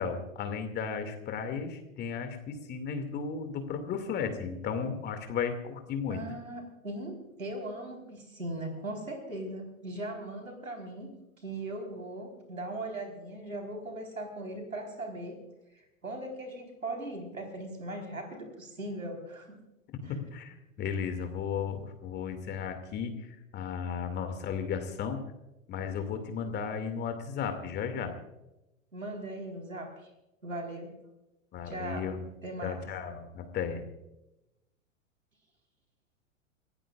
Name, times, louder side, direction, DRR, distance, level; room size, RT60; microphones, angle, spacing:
voice 1, 0.0-6.2 20.1-25.2 25.7-28.1 31.5-32.3 32.6-33.8, left 6 dB, 25° left, 7 dB, 2.4 m, -34 dB
voice 2, 6.1-11.1 11.4-15.4 15.7-19.6 20.0-20.1 28.9-29.9 30.4-30.9 31.6-32.1 32.4-32.8, right 1 dB, 85° right, 5 dB, 4.3 m, -39 dB
29.5 x 15.5 x 2.5 m, 0.93 s
figure-of-eight pair, 100°, 40 cm